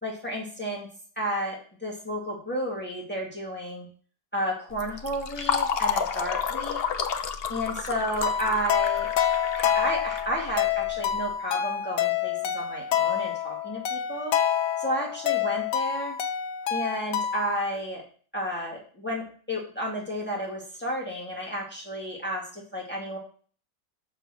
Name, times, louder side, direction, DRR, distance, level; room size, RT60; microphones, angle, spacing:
voice 1, 0.0-0.9 1.2-3.9 4.3-6.8 7.5-9.1 9.5-14.3 14.8-16.2 16.7-18.0 18.3-23.2, equal, 5° left, -3 dB, 2.3 m, -32 dB
Fill (with liquid), 4.7-11.1, left 7 dB, 60° left, 0.6 m, -31 dB
sound 1, 8.2-17.6, left 9 dB, 85° left, 1.4 m, -27 dB
6.7 x 5.2 x 6.2 m, 0.43 s
omnidirectional pair, 1.8 m